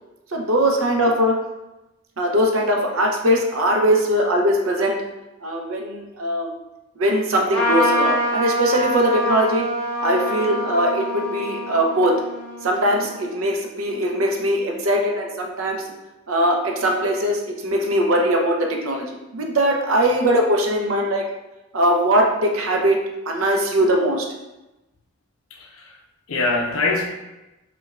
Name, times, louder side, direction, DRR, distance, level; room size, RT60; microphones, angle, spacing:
voice 1, 0.3-1.3 2.2-5.0 5.4-6.5 7.0-9.7 10.0-12.1 12.6-15.8 16.3-18.6 18.8-19.0 19.3-21.2 21.7-23.0 23.3-24.2, equal, 75° right, 1 dB, 0.6 m, -20 dB
Trumpet, 7.5-13.3, equal, 10° left, 0.8 m, -25 dB
voice 2, 25.5-26.0 26.3-27.1, left 3 dB, 75° left, 1 dB, 0.5 m, -23 dB
5.1 x 2.3 x 2.3 m, 0.99 s
head